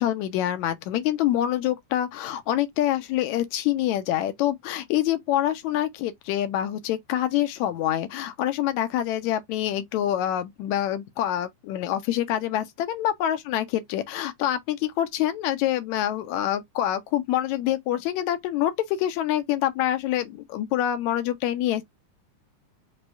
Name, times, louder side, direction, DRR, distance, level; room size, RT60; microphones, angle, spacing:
voice 1, 0.0-21.8, left 12 dB, 75° left, 1.9 m, -26 dB
5.4 x 3.1 x 2.5 m
omnidirectional pair, 3.7 m